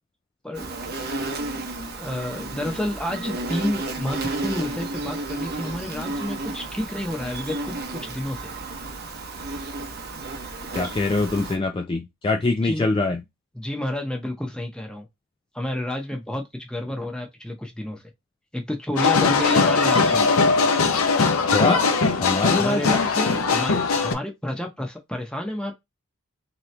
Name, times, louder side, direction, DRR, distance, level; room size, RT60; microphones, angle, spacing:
voice 1, 0.4-0.7 2.0-8.5 12.6-12.9 13.6-15.1 15.5-18.0 18.5-20.3 22.6-23.0 23.5-25.7, left 1 dB, 5° left, 0.8 m, -30 dB
Insect, 0.5-11.6, right 2 dB, 45° right, 0.9 m, -32 dB
voice 2, 10.7-13.2 21.5-21.8 22.2-23.4, left 3 dB, 20° left, 0.3 m, -24 dB
sound 1, 19.0-24.1, left 4 dB, 70° left, 0.7 m, -20 dB
3.7 x 2.9 x 3.3 m
head